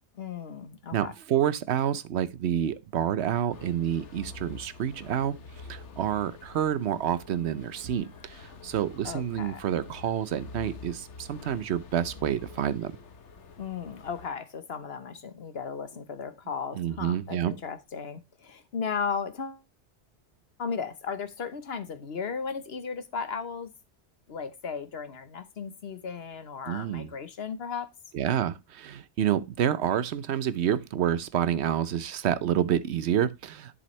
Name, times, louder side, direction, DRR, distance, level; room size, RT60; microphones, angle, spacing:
voice 1, 0.1-1.1 9.0-9.6 13.6-19.6 20.6-23.7 24.3-27.9, left 6 dB, 65° left, 1.3 m, -35 dB
voice 2, 0.9-5.3 5.7-12.9 16.7-17.5 26.7-27.1 28.1-33.7, right 10 dB, 70° right, 0.9 m, -28 dB
sound 1, 3.5-14.3, left 4 dB, 80° left, 1.4 m, -47 dB
10.5 x 6.9 x 3.2 m
omnidirectional pair, 1.2 m